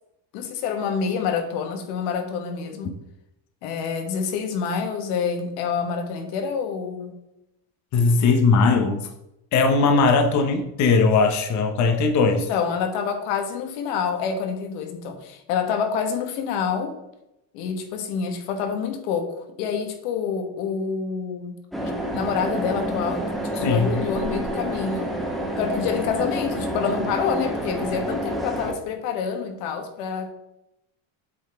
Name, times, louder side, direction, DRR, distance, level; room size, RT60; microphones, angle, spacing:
voice 1, 0.3-2.9 3.6-7.2 12.3-16.9 17.5-21.6 22.1-25.1 25.6-30.3, left 6 dB, 85° left, 6 dB, 1.4 m, -27 dB
voice 2, 7.9-9.1 9.5-12.5 23.6-23.9, left 4 dB, 35° left, 6 dB, 0.8 m, -19 dB
sound 1, 21.7-28.7, right 1 dB, ahead, 1.4 m, -28 dB
8.4 x 4.0 x 4.3 m, 0.85 s
cardioid pair, 145°, 48 cm